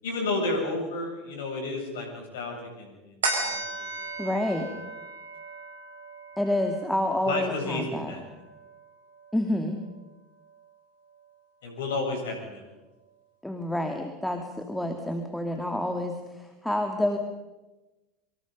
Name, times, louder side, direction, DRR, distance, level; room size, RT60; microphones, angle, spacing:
voice 1, 0.0-4.1 7.2-8.2 11.6-12.7, left 2 dB, 65° left, 2 dB, 7.7 m, -32 dB
sound 1, 3.2-10.0 10.4-10.5, right 3 dB, 70° right, 5.8 m, -36 dB
voice 2, 4.2-4.7 6.4-8.1 9.3-9.8 13.4-17.2, left 1 dB, 5° left, 4 dB, 2.5 m, -28 dB
26.0 x 25.5 x 5.4 m, 1.1 s
figure-of-eight pair, 75°, 0 cm